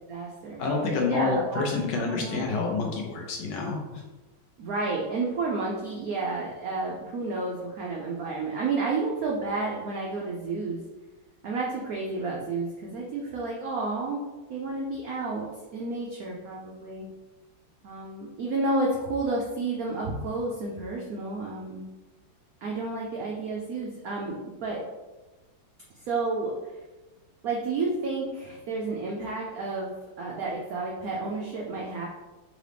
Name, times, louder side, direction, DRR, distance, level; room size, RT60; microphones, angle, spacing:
voice 1, 0.1-0.6 1.0-1.6 2.0-2.4 4.6-10.8 11.4-14.2 14.5-15.5 15.7-17.1 17.8-21.8 22.6-24.8 26.0-26.5 27.4-32.1, right 3 dB, 80° right, -3 dB, 0.8 m, -31 dB
voice 2, 0.6-4.0, left 4 dB, 70° left, 0 dB, 1.2 m, -28 dB
3.9 x 3.0 x 3.3 m, 1.2 s
omnidirectional pair, 2.2 m